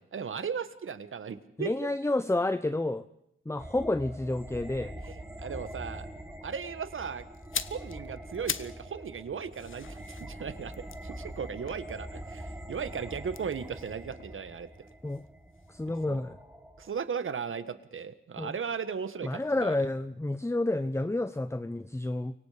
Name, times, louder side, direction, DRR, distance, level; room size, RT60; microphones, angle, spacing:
voice 1, 0.1-1.7 5.1-6.1 6.4-7.3 7.6-14.7 15.9-16.2 16.8-19.8, right 6 dB, 80° right, 12 dB, 1.5 m, -37 dB
voice 2, 1.6-3.0 3.5-4.9 15.0-15.3 15.7-16.4 18.4-18.5 19.2-22.3, left 2 dB, 15° left, 12 dB, 0.9 m, -30 dB
sound 1, 3.6-16.9, right 1 dB, 10° right, 3.6 m, -44 dB
sound 2, 7.3-8.9 9.2-12.4 13.2-15.3 15.5-15.7, left 7 dB, 75° left, 1.0 m, -40 dB
29.5 x 24.0 x 5.1 m, 0.81 s
cardioid pair, 60°, 21 cm